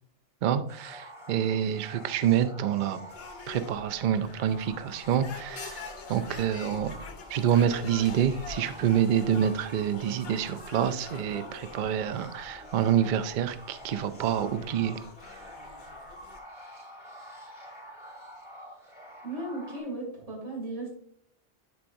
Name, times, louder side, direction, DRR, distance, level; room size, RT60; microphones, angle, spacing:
voice 1, 0.4-3.0 3.5-7.0 7.3-15.0, right 9 dB, 55° right, 11 dB, 0.5 m, -27 dB
sound 1, 0.7-19.8, equal, ahead, 2.6 m, -47 dB
sound 2, 3.1-16.4, left 5 dB, 65° left, 0.9 m, -46 dB
voice 2, 19.2-20.9, right 2 dB, 85° right, -3 dB, 3.2 m, -36 dB
10.0 x 4.6 x 2.6 m, 0.64 s
omnidirectional pair, 1.2 m